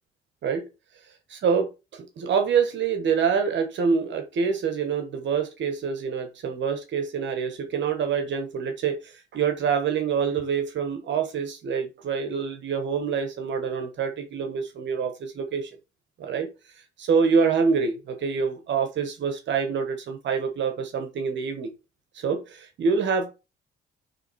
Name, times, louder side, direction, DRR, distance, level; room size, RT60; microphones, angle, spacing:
voice 1, 1.3-15.7 16.2-16.5 17.0-21.7 22.1-23.3, right 6 dB, 65° right, 1.2 m, -26 dB
6.8 x 3.4 x 4.6 m
cardioid pair, 90°, 20 cm